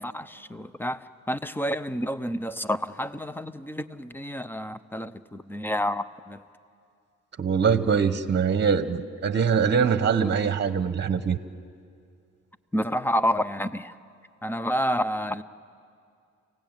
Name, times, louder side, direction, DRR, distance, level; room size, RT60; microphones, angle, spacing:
voice 1, 0.0-6.4 12.7-13.9 14.4-15.4, equal, 5° left, 14 dB, 0.8 m, -29 dB
voice 2, 7.4-11.4, right 6 dB, 35° right, 12 dB, 1.1 m, -23 dB
30.0 x 17.0 x 9.0 m, 2.3 s
cardioid pair, 90°, 30 cm